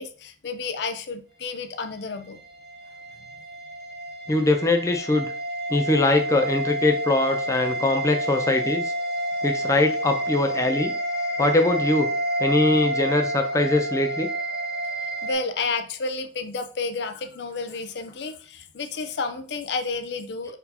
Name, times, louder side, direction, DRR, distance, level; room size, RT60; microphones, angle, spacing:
voice 1, 0.0-2.4 15.2-20.6, left 4 dB, 80° left, 7 dB, 0.5 m, -31 dB
sound 1, 2.3-15.3, right 1 dB, 65° right, 1.1 m, -29 dB
voice 2, 4.3-5.3 5.7-8.9 9.4-10.9 11.4-12.1 12.4-14.3, left 2 dB, 20° left, 5 dB, 0.5 m, -22 dB
4.4 x 2.7 x 4.1 m, 0.42 s
head